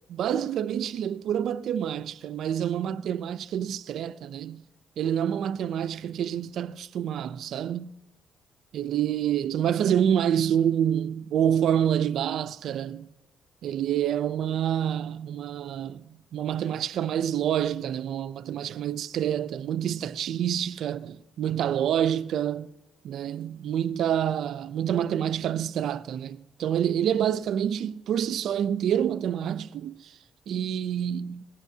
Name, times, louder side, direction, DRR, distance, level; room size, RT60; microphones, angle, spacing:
voice 1, 0.0-4.7 5.0-7.9 8.7-13.1 13.6-22.7 23.0-30.2 30.5-31.4, right 9 dB, 75° right, 0.5 m, -27 dB
20.0 x 16.0 x 2.8 m
cardioid pair, 90°, 0 cm